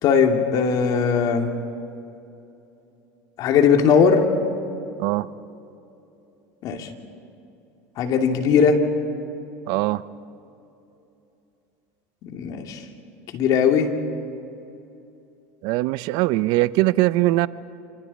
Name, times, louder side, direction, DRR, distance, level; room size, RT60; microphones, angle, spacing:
voice 1, 0.0-1.5 3.4-4.3 6.6-6.9 8.0-8.8 12.2-12.8 13.3-13.9, left 6 dB, 55° left, 4 dB, 2.6 m, -19 dB
voice 2, 9.7-10.0 15.6-17.5, right 18 dB, 65° right, 17 dB, 0.6 m, -21 dB
28.0 x 26.0 x 4.2 m, 2.8 s
hypercardioid pair, 90°, 8 cm